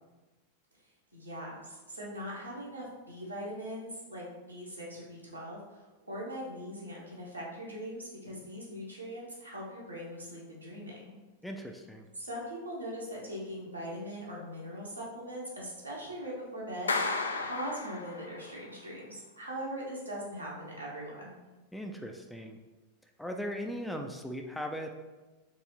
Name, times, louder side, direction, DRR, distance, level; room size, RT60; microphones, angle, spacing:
voice 1, 1.1-11.2 12.1-21.4, equal, 85° right, -6 dB, 1.3 m, -41 dB
voice 2, 11.4-12.1 21.7-22.6 23.2-24.9, equal, 5° left, 3 dB, 0.4 m, -38 dB
Clapping, 16.9-18.5, left 3 dB, 75° left, 0.3 m, -33 dB
4.5 x 3.2 x 2.9 m, 1.2 s
figure-of-eight pair, 90°, 0 cm